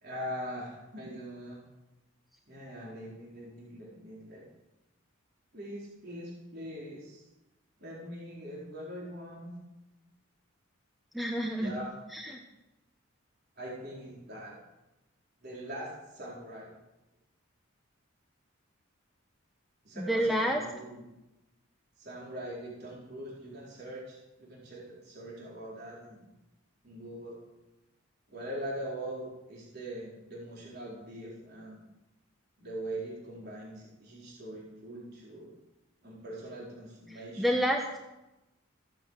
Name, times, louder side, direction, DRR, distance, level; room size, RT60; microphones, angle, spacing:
voice 1, 0.0-1.6 2.5-4.4 5.5-7.3 7.8-9.5 11.6-11.9 13.6-14.6 15.4-16.7 19.8-21.0 22.0-26.2 26.8-27.4 28.3-31.8 32.6-35.5 36.0-37.5, right 1 dB, 45° right, -4 dB, 4.3 m, -42 dB
voice 2, 11.1-11.7 12.1-12.4 20.0-20.6 37.4-38.0, equal, ahead, 1 dB, 1.1 m, -29 dB
15.5 x 9.7 x 8.2 m, 0.97 s
head